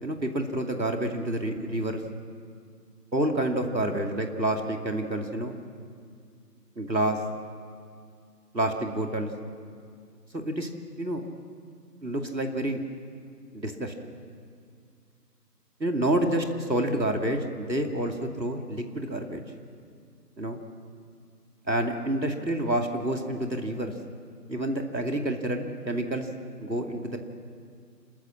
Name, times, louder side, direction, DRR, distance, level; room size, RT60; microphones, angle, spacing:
voice 1, 0.0-2.0 3.1-5.6 6.8-7.2 8.5-9.3 10.4-10.7 11.0-11.2 12.0-12.8 13.5-14.1 15.8-19.4 20.4-20.6 21.7-23.9 24.5-26.3 26.6-27.2, right 1 dB, 90° right, 4 dB, 2.6 m, -28 dB
28.5 x 14.0 x 7.3 m, 2.2 s
figure-of-eight pair, 175°, 50 cm